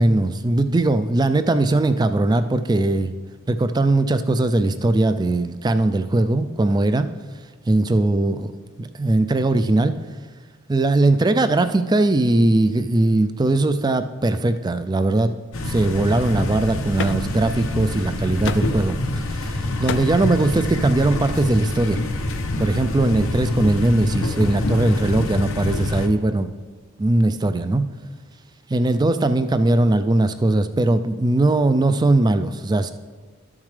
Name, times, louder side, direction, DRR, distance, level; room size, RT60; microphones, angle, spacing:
voice 1, 0.0-3.1 3.5-7.1 7.7-8.5 8.8-10.0 10.7-15.3 15.7-22.0 22.6-26.5 27.0-27.8 28.7-32.9, right 2 dB, 20° right, 11 dB, 0.3 m, -20 dB
sound 1, 15.5-26.1, left 1 dB, 80° left, 0.8 m, -26 dB
sound 2, 16.7-17.5 17.7-18.0 18.3-18.9 19.6-20.2 20.9-21.1, left 5 dB, 55° left, 0.4 m, -32 dB
13.0 x 7.2 x 3.3 m, 1.4 s
head